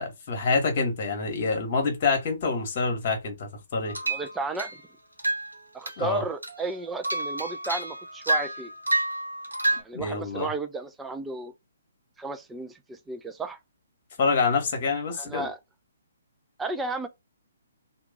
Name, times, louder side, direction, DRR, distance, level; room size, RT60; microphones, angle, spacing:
voice 1, 0.0-3.9 6.0-6.2 9.9-10.5 14.2-15.5, left 4 dB, 40° left, 1.4 m, -26 dB
sound 1, 3.8-4.8 5.2-5.5 5.9-6.1 6.4-9.8, right 2 dB, 85° right, 1.0 m, -29 dB
voice 2, 4.1-4.7 5.7-8.7 9.7-11.5 12.2-13.6 15.1-15.6 16.6-17.1, right 3 dB, 10° right, 0.4 m, -33 dB
2.9 x 2.3 x 3.5 m
figure-of-eight pair, 130°, 0 cm